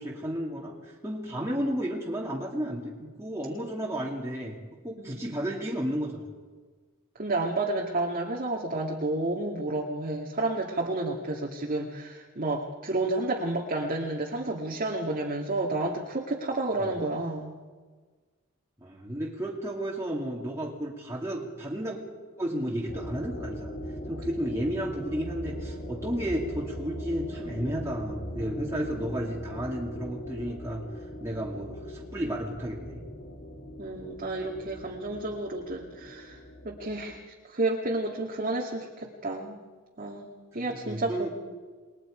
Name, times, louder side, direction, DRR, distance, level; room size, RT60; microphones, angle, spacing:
voice 1, 0.0-4.6 4.8-6.3 16.8-16.9 18.8-22.0 22.4-23.7 24.1-30.8 31.2-33.0 40.6-41.3, right 1 dB, 15° right, -4 dB, 2.5 m, -32 dB
voice 2, 7.2-17.5 33.8-39.6 40.0-40.3 40.5-41.3, right 2 dB, 40° right, -1 dB, 2.1 m, -31 dB
sound 1, 22.9-37.2, equal, 60° left, 2.7 m, -40 dB
29.0 x 21.0 x 5.1 m, 1.4 s
head